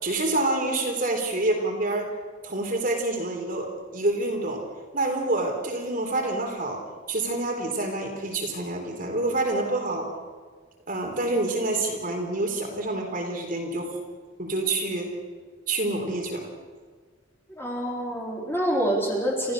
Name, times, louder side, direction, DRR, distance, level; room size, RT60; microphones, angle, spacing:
voice 1, 0.0-2.1 2.4-4.6 4.9-6.8 7.1-10.1 10.9-14.0 14.4-15.2 15.7-16.5, right 2 dB, 45° right, 1 dB, 3.7 m, -27 dB
voice 2, 17.6-19.5, equal, 10° left, -2 dB, 4.4 m, -26 dB
30.0 x 14.5 x 6.6 m, 1.5 s
head